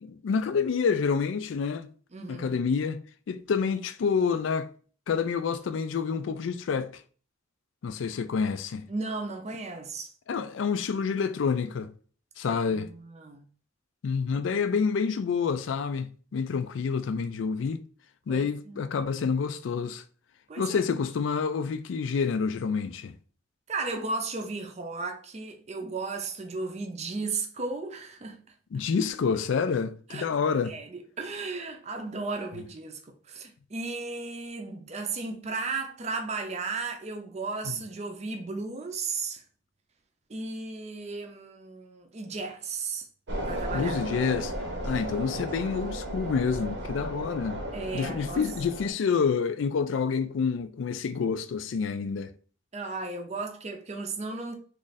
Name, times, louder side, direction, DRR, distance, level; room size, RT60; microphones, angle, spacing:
voice 1, 0.0-1.9 2.3-3.0 3.3-4.7 5.1-7.0 7.8-8.9 10.3-11.9 12.4-12.9 14.0-17.8 18.3-20.0 20.6-23.1 28.7-30.7 37.7-37.8 43.7-44.5 44.8-47.6 47.9-52.3, left 5 dB, 80° left, 0.4 m, -28 dB
voice 2, 2.1-2.6 8.9-10.1 12.5-13.4 18.3-18.9 20.5-20.7 23.7-28.4 30.1-30.3 30.6-39.4 40.3-43.0 43.5-44.0 44.9-45.0 47.7-48.5 52.7-54.5, right 3 dB, 35° right, 0.5 m, -35 dB
sound 1, 43.3-48.9, right 1 dB, 65° right, 0.8 m, -34 dB
3.1 x 2.5 x 4.0 m
head